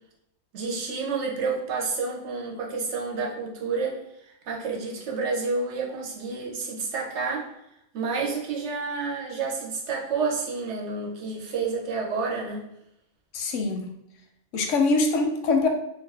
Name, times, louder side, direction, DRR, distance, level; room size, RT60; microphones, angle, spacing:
voice 1, 0.5-7.5 7.9-12.7, right 4 dB, 75° right, 0 dB, 0.9 m, -29 dB
voice 2, 13.3-14.0 14.5-15.7, left 3 dB, 85° left, 4 dB, 0.9 m, -23 dB
2.5 x 2.4 x 3.3 m, 0.83 s
omnidirectional pair, 1.2 m